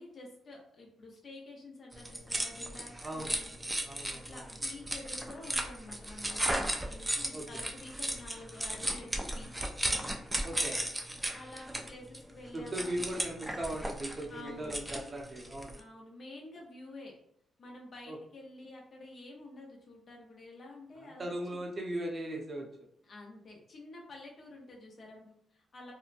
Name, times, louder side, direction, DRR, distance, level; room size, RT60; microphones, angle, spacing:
voice 1, 0.0-3.6 4.1-9.7 10.7-10.8 11.3-12.9 14.3-14.8 15.8-17.1 17.6-21.2 21.5-21.6 23.0-25.9, left 2 dB, 55° left, -1 dB, 0.8 m, -49 dB
sound 1, 1.9-15.8, right 1 dB, 15° right, 0.4 m, -36 dB
voice 2, 3.0-3.3 3.8-4.4 7.3-7.6 10.4-10.8 12.5-15.8 18.1-18.2 21.0-22.7, right 1 dB, 40° right, 0 dB, 0.7 m, -38 dB
2.8 x 2.1 x 2.5 m, 0.71 s
cardioid pair, 70°, 0 cm